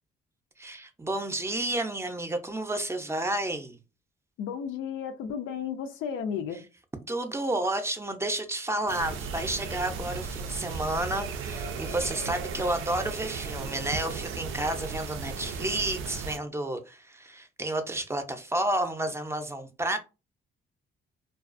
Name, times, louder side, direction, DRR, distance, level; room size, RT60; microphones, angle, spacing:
voice 1, 0.6-3.8 7.1-20.0, right 1 dB, 15° right, 0.5 m, -31 dB
voice 2, 4.4-6.6, left 7 dB, 85° left, 0.4 m, -33 dB
sound 1, 8.9-16.4, right 5 dB, 85° right, 0.4 m, -36 dB
2.3 x 2.3 x 2.4 m
cardioid pair, 90°, 20 cm